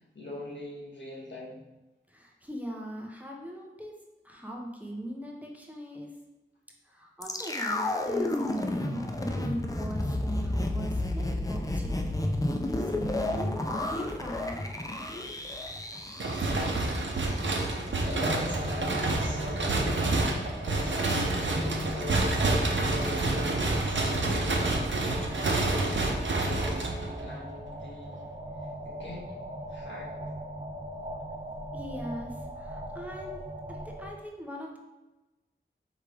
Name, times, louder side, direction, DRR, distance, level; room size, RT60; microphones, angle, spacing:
voice 1, 0.1-1.6 18.0-22.5 22.8-26.1 26.4-28.2 28.8-29.3 29.7-30.3, left 1 dB, 75° left, -4 dB, 1.4 m, -41 dB
voice 2, 2.1-3.9 4.2-6.1 6.8-12.1 12.6-14.7 31.7-34.8, right 1 dB, 10° right, -1 dB, 0.8 m, -40 dB
sound 1, 7.2-17.3 17.6-17.7, left 1 dB, 20° left, 0.5 m, -31 dB
sound 2, 16.2-27.4, right 2 dB, 75° right, 0.7 m, -28 dB
sound 3, 18.0-34.1, right 1 dB, 40° right, 0.8 m, -40 dB
4.8 x 3.3 x 3.3 m, 1.1 s
wide cardioid pair, 60°, 19 cm